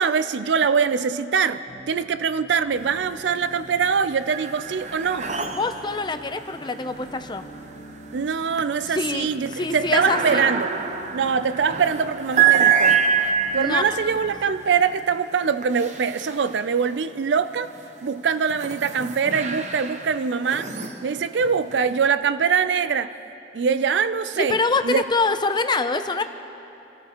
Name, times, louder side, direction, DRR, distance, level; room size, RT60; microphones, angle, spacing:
voice 1, 0.0-1.6 1.9-5.3 8.1-10.7 11.1-13.0 13.5-17.7 18.0-20.7 21.0-23.1 23.5-24.6 24.8-25.0, right 6 dB, 75° right, 0.4 m, -23 dB
sound 1, 1.7-14.8, equal, 50° left, 1.0 m, -46 dB
sound 2, 2.8-3.4 3.8-17.0 17.6-22.1, right 7 dB, 40° right, 0.8 m, -27 dB
voice 2, 5.5-7.4 8.9-9.3 9.5-10.5 13.6-14.2 24.3-26.2, left 3 dB, 25° left, 0.6 m, -25 dB
26.5 x 14.0 x 3.0 m
head